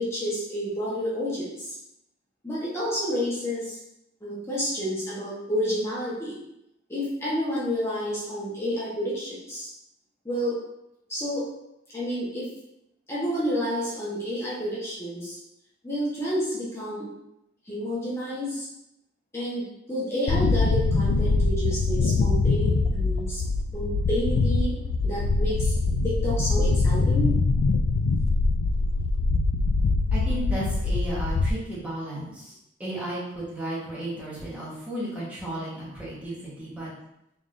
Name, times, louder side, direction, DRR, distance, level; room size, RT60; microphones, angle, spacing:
voice 1, 0.0-1.7 2.4-3.8 4.2-6.4 6.9-9.7 10.2-10.6 11.1-11.4 11.9-12.5 13.1-15.4 15.8-17.1 17.7-18.7 19.3-23.4 23.7-24.7 25.0-25.7 26.0-27.3, equal, 15° left, -9 dB, 1.1 m, -29 dB
sound 1, 20.3-31.5, left 3 dB, 90° left, 0.3 m, -23 dB
voice 2, 30.1-36.9, right 1 dB, 10° right, -8 dB, 1.3 m, -34 dB
3.7 x 3.5 x 2.6 m, 0.84 s
head